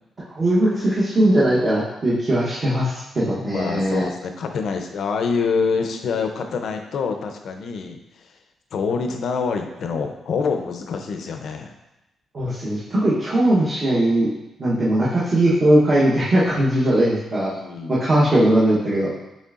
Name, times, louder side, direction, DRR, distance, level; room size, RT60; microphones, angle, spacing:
voice 1, 0.3-4.1 12.3-14.3 14.6-17.5 17.9-19.1, right 1 dB, 35° right, -8 dB, 0.9 m, -19 dB
voice 2, 3.5-8.0 8.7-11.7 16.5-17.0 17.5-18.0, left 5 dB, 65° left, 5 dB, 0.5 m, -26 dB
6.5 x 3.2 x 2.4 m, 0.97 s
cardioid pair, 135°, 0 cm